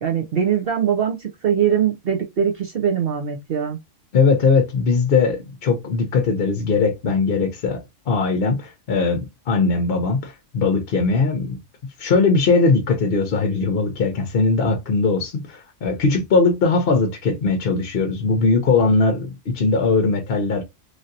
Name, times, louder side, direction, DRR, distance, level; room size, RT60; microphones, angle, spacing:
voice 1, 0.0-3.8, right 8 dB, 55° right, 0.7 m, -22 dB
voice 2, 4.1-11.6 12.0-20.6, left 4 dB, 55° left, 0.7 m, -20 dB
3.2 x 2.7 x 2.5 m
omnidirectional pair, 1.4 m